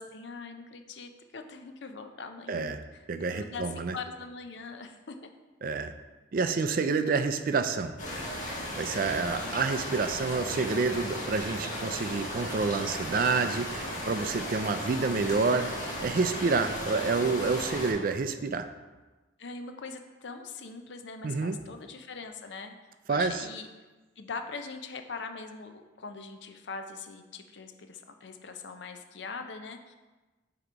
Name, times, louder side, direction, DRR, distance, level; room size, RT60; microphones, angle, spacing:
voice 1, 0.0-3.0 3.3-5.3 7.1-7.2 9.3-9.6 15.0-15.6 19.4-22.7 23.1-23.7 24.2-30.0, left 4 dB, 70° left, 6 dB, 0.6 m, -42 dB
voice 2, 2.5-2.8 3.1-3.9 5.6-5.9 6.3-8.0 8.7-15.7 16.0-18.7 21.2-21.6 23.1-23.5, right 4 dB, 50° right, 9 dB, 0.4 m, -28 dB
sound 1, 8.0-17.9, equal, 40° left, 1.7 m, -36 dB
7.9 x 3.0 x 5.0 m, 1.2 s
head